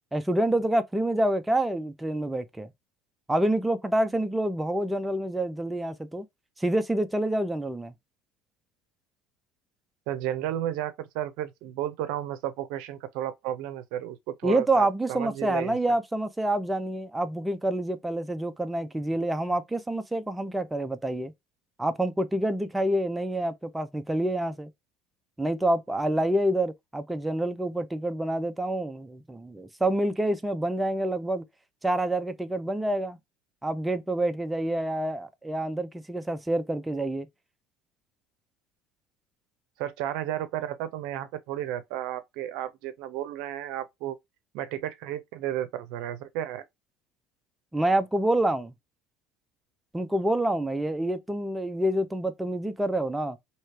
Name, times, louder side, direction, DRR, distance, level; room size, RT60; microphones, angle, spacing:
voice 1, 0.1-2.7 3.3-6.3 6.6-7.9 14.4-21.3 21.8-24.7 25.4-31.4 31.8-33.2 33.6-37.3 47.7-48.7 49.9-53.4, right 1 dB, 10° right, 0.5 m, -27 dB
voice 2, 10.1-15.8 39.8-44.2 44.5-46.6, right 12 dB, 75° right, 0.6 m, -33 dB
3.1 x 2.9 x 4.5 m
supercardioid pair, 110°, 0 cm